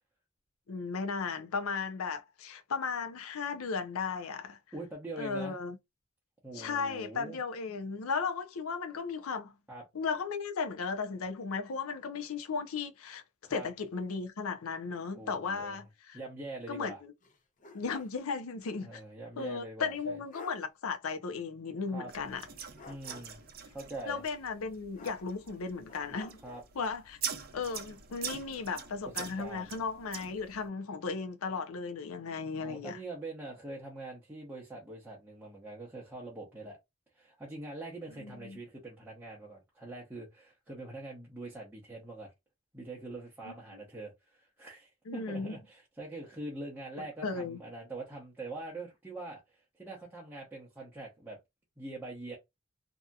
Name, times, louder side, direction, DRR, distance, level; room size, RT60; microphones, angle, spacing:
voice 1, 0.7-4.6 5.2-5.8 6.5-9.6 9.9-13.2 13.5-16.2 16.7-17.1 17.7-19.0 19.4-22.4 24.1-26.4 26.8-27.2 27.5-33.0 38.2-38.6 43.4-43.8 45.1-45.6 47.0-47.6, left 5 dB, 85° left, 0.5 m, -36 dB
voice 2, 4.7-5.6 6.4-7.4 9.7-9.8 13.4-13.7 15.2-15.8 16.1-17.0 18.8-20.2 21.9-22.1 22.9-23.4 23.7-24.2 26.4-26.6 29.2-29.7 32.6-36.8 37.1-42.3 42.7-51.4 51.8-52.4, right 2 dB, 10° right, 0.7 m, -44 dB
sound 1, 17.2-18.2 18.6-18.7 19.9-20.0 20.3-20.6 22.8-23.5 24.9-25.5 25.9-26.7, left 3 dB, 35° left, 0.5 m, -50 dB
sound 2, 22.1-30.7, right 8 dB, 45° right, 0.5 m, -44 dB
2.7 x 2.6 x 2.3 m
head